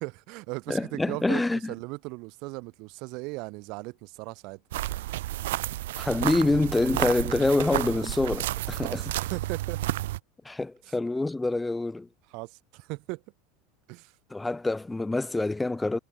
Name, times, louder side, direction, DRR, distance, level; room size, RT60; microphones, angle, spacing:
voice 1, 0.0-4.6 8.8-9.8 10.9-11.0 12.3-13.2 13.9-14.1, right 27 dB, 60° right, 1.8 m, -38 dB
voice 2, 0.7-1.7 6.0-9.0 10.4-12.1 14.3-16.0, left 2 dB, 10° left, 0.7 m, -26 dB
sound 1, 4.7-10.2, right 16 dB, 85° right, 0.9 m, -31 dB
supercardioid pair, 125°, 0 cm